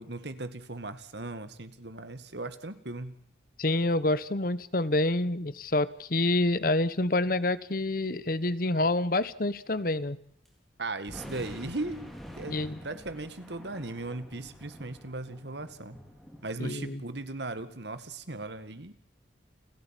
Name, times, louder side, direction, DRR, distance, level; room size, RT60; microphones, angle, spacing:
voice 1, 0.0-3.2 10.8-16.0 16.4-18.9, right 2 dB, 70° right, 12 dB, 1.9 m, -38 dB
voice 2, 3.6-10.2 12.5-12.8 16.6-17.0, left 2 dB, 50° left, 17 dB, 1.0 m, -27 dB
sound 1, 10.4-10.5 11.1-16.5, equal, ahead, 4.6 m, -47 dB
30.0 x 13.5 x 9.0 m, 0.67 s
head